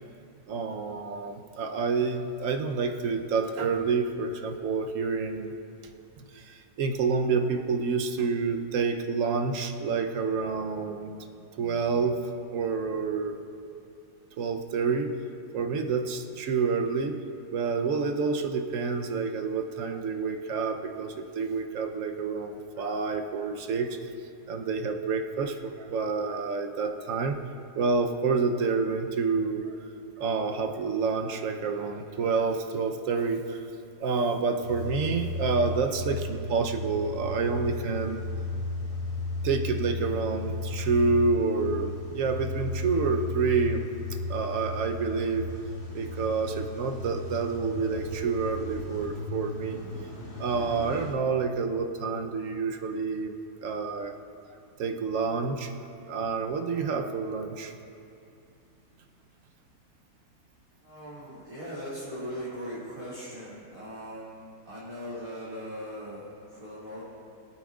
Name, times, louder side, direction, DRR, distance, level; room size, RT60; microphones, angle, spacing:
voice 1, 0.5-5.5 6.2-11.1 11.6-13.4 14.4-15.2 15.5-24.0 24.5-27.4 27.8-29.7 30.2-33.6 34.0-38.2 39.4-43.9 44.3-45.5 45.9-49.9 50.4-53.3 53.6-54.2 54.8-55.7 56.1-57.7, right 4 dB, 60° right, 5 dB, 1.1 m, -28 dB
Car / Engine starting / Idling, 34.6-51.1, left 2 dB, 40° left, 3.0 m, -35 dB
voice 2, 60.8-67.0, equal, 20° right, -11 dB, 2.5 m, -39 dB
23.5 x 8.6 x 2.4 m, 2.6 s
omnidirectional pair, 1.7 m